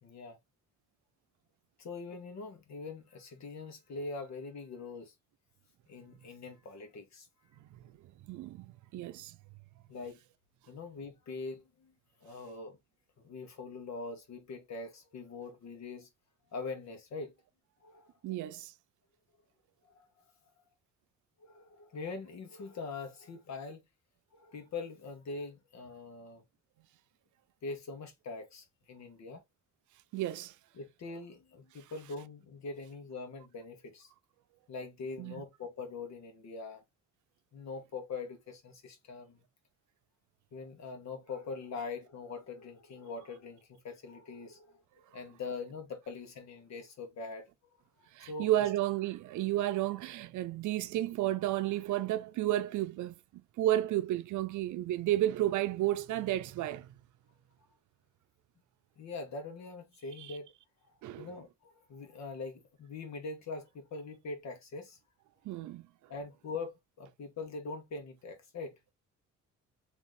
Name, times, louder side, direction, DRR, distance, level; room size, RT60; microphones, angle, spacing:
voice 1, 0.0-0.4 1.8-5.1 5.9-7.3 9.9-10.2 10.7-11.9 12.2-12.8 13.2-16.1 16.5-17.3 17.8-18.1 19.8-20.1 21.4-23.8 24.3-26.4 27.6-29.4 30.7-34.1 34.7-36.8 37.5-39.4 40.5-44.8 45.1-47.4 48.2-48.5 59.0-60.5 61.2-65.0 66.1-68.7, left 4 dB, 65° left, 1.4 m, -43 dB
voice 2, 8.3-9.4 18.2-18.7 30.1-30.5 35.2-35.4 48.1-57.0 60.2-60.4 61.0-61.3 65.4-65.9, right 14 dB, 75° right, 0.6 m, -32 dB
3.6 x 3.1 x 3.2 m
cardioid pair, 90°, 30 cm